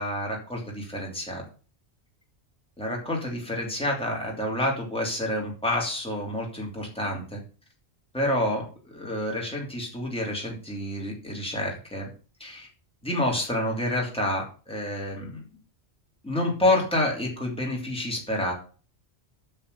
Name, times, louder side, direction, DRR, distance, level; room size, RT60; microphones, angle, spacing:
voice 1, 0.0-1.4 2.8-7.4 8.1-12.1 12.4-12.7 13.0-15.4 16.2-18.5, left 1 dB, 5° left, -2 dB, 2.8 m, -28 dB
8.4 x 6.9 x 6.6 m, 0.38 s
omnidirectional pair, 1.2 m